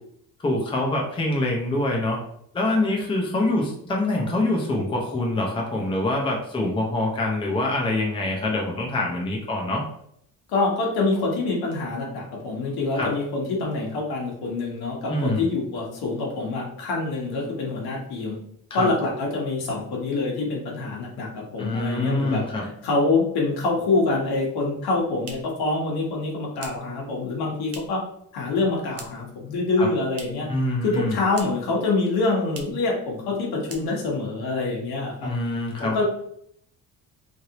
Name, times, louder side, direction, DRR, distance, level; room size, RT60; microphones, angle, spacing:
voice 1, 0.4-2.2 2.5-9.8 13.0-13.1 15.1-15.4 18.7-18.9 21.6-22.7 29.8-29.9 30.5-31.2 35.2-36.0, left 2 dB, 15° left, -1 dB, 0.6 m, -25 dB
voice 2, 10.5-18.4 18.7-28.0 28.3-30.5 30.8-35.3 35.8-36.0, left 3 dB, 80° left, -2 dB, 1.2 m, -26 dB
sound 1, 25.1-28.1 28.4-29.4 29.6-30.6 30.8-31.8 32.0-32.1 32.5-32.9 33.2-33.4 33.6-34.3, right 4 dB, 40° right, 0.5 m, -44 dB
3.2 x 2.6 x 2.8 m, 0.69 s
cardioid pair, 150°, 37 cm